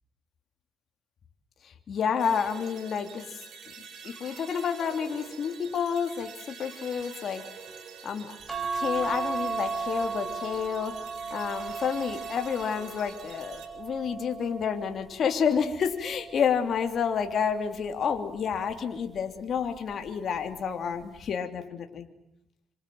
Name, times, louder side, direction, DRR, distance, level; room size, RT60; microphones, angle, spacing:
voice 1, 1.6-3.4 4.0-7.4 8.0-8.4 8.7-11.0 11.3-22.1, left 7 dB, 60° left, 5 dB, 3.2 m, -29 dB
sound 1, 2.2-13.7, right 6 dB, 65° right, 7.5 m, -46 dB
sound 2, 8.5-15.1 15.7-17.1 18.4-18.8 19.1-19.2, right 4 dB, 25° right, 5.0 m, -36 dB
27.5 x 26.0 x 7.9 m, 0.83 s
cardioid pair, 90°, 0 cm